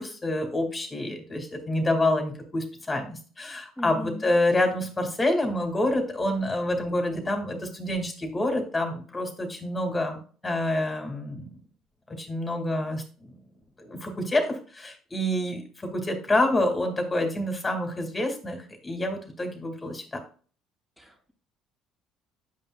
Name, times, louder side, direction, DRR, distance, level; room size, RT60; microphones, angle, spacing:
voice 1, 0.0-11.5 12.1-13.0 13.8-20.2, left 1 dB, 20° left, 5 dB, 2.1 m, -27 dB
voice 2, 3.8-4.3 21.0-21.3, left 1 dB, 10° right, -5 dB, 2.4 m, -38 dB
8.5 x 5.4 x 2.3 m, 0.40 s
supercardioid pair, 75°, 0 cm